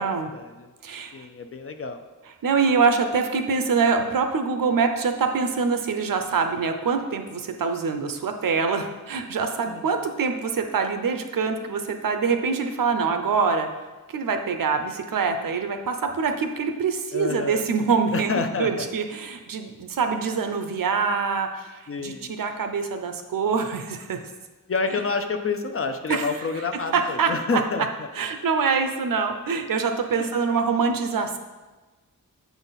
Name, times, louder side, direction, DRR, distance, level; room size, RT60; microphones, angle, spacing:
voice 1, 0.3-0.7 1.1-2.0 9.7-9.9 17.1-17.6 18.1-18.9 21.9-22.3 24.7-28.1 30.2-30.4, left 4 dB, 40° left, 6 dB, 0.5 m, -28 dB
voice 2, 0.8-1.3 2.4-13.7 14.1-18.3 18.6-24.2 26.1-26.3 26.9-27.6 28.1-31.4, right 5 dB, 70° right, 6 dB, 0.6 m, -25 dB
7.0 x 4.1 x 4.0 m, 1.2 s
wide cardioid pair, 85°, 35 cm